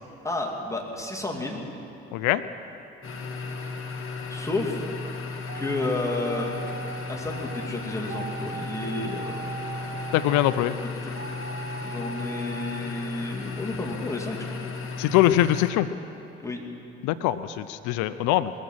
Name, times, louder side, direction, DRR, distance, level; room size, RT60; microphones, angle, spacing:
voice 1, 0.2-1.6 4.3-4.8 5.5-6.6 7.1-9.6 11.0-11.1 11.8-14.6 16.4-16.6, left 2 dB, 10° left, -1 dB, 2.5 m, -31 dB
voice 2, 2.1-2.4 10.1-10.8 15.0-15.9 17.0-18.5, left 14 dB, 70° left, 14 dB, 0.5 m, -22 dB
sound 1, 3.0-15.7, left 4 dB, 45° left, 1.6 m, -35 dB
sound 2, 5.5-10.9 11.1-12.8, right 6 dB, 35° right, 0.7 m, -39 dB
20.5 x 7.4 x 6.3 m, 2.8 s
hypercardioid pair, 60°, 30 cm